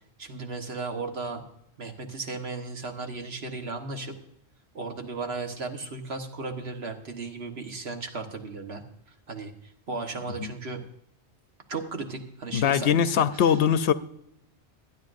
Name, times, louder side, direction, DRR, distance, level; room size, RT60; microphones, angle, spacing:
voice 1, 0.2-1.4 1.8-4.2 4.7-8.8 9.3-10.8 11.7-13.4, right 3 dB, 65° right, 1.6 m, -35 dB
voice 2, 12.5-13.9, left 8 dB, 80° left, 0.9 m, -22 dB
25.5 x 9.0 x 2.6 m
omnidirectional pair, 1.1 m